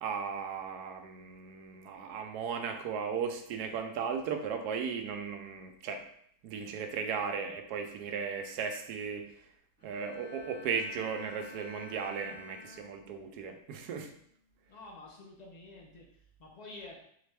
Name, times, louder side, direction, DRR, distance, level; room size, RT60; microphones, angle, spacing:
voice 1, 0.0-6.0 6.4-9.3 9.8-14.1, right 6 dB, 75° right, 5 dB, 1.1 m, -36 dB
Bowed string instrument, 9.8-13.4 13.8-14.2, left 3 dB, 10° right, 1.6 m, -51 dB
voice 2, 14.7-17.0, left 2 dB, 80° left, -1 dB, 0.3 m, -49 dB
4.1 x 3.1 x 3.4 m, 0.68 s
omnidirectional pair, 1.7 m